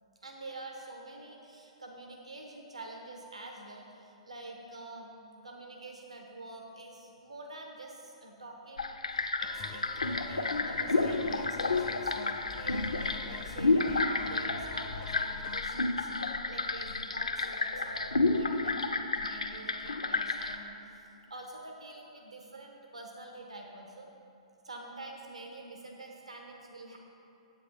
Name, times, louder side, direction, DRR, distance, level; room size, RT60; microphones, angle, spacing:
voice 1, 0.2-12.1 12.5-24.1 24.6-27.0, right 2 dB, 80° right, 1 dB, 1.0 m, -47 dB
sound 1, 8.8-20.6, left 3 dB, 80° left, 0.5 m, -31 dB
sound 2, 9.4-15.6, left 6 dB, 25° left, 0.4 m, -48 dB
8.8 x 8.3 x 4.1 m, 2.7 s
figure-of-eight pair, 115°, 3 cm